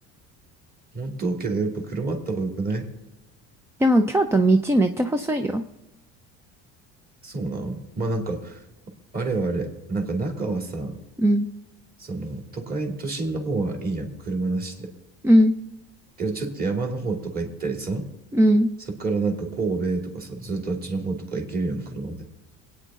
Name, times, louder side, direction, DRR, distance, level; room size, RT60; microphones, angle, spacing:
voice 1, 0.9-2.9 7.2-8.6 9.1-11.0 12.0-14.9 16.2-18.1 18.9-22.2, right 3 dB, 25° right, 2 dB, 2.7 m, -28 dB
voice 2, 3.8-5.6 11.2-11.5 15.2-15.5 18.3-18.7, right 1 dB, 10° right, 6 dB, 0.4 m, -18 dB
25.5 x 9.2 x 3.7 m, 1.0 s
cardioid pair, 145°, 34 cm